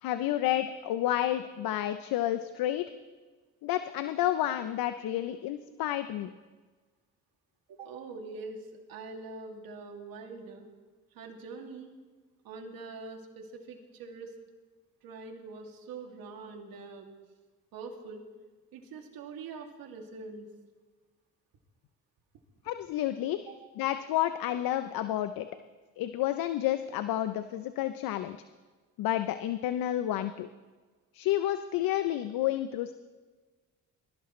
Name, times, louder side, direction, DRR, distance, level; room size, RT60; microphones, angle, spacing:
voice 1, 0.0-2.9 3.6-6.3 22.6-23.4 23.8-25.5 26.0-28.4 29.0-30.5 31.1-32.9, left 13 dB, 75° left, 10 dB, 0.7 m, -30 dB
voice 2, 7.7-10.7 11.1-11.9 12.4-14.3 15.0-17.1 17.7-18.2 18.7-20.5 23.5-23.6, right 4 dB, 75° right, 2 dB, 2.6 m, -44 dB
23.5 x 15.5 x 3.2 m, 1.3 s
supercardioid pair, 80°, 35 cm